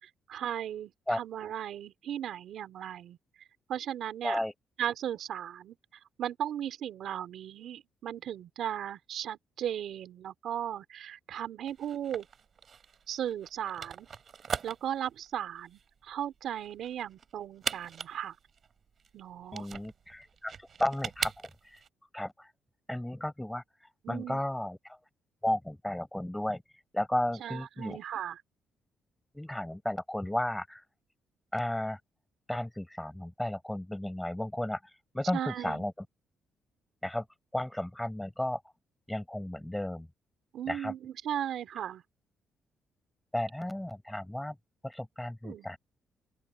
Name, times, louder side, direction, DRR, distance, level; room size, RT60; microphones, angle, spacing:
voice 1, 0.0-3.2 3.7-4.4 4.8-5.8 6.2-12.3 13.1-14.1 14.6-18.4 19.1-19.7 24.0-24.4 27.4-28.4 35.3-35.9 40.5-42.0 45.4-45.7, right 10 dB, 70° right, 3.5 m, -36 dB
sound 1, 11.7-21.9, right 6 dB, 50° right, 7.5 m, -40 dB
voice 2, 19.5-20.5 20.8-21.8 22.1-22.5 22.9-25.0 25.4-26.6 26.9-28.0 29.3-30.8 31.5-32.0 32.5-34.8 35.1-35.9 37.0-37.2 37.5-38.6 39.1-40.1 40.7-40.9 43.3-44.6 44.8-45.8, left 1 dB, 5° left, 7.9 m, -34 dB
open air
cardioid pair, 90°, 0 cm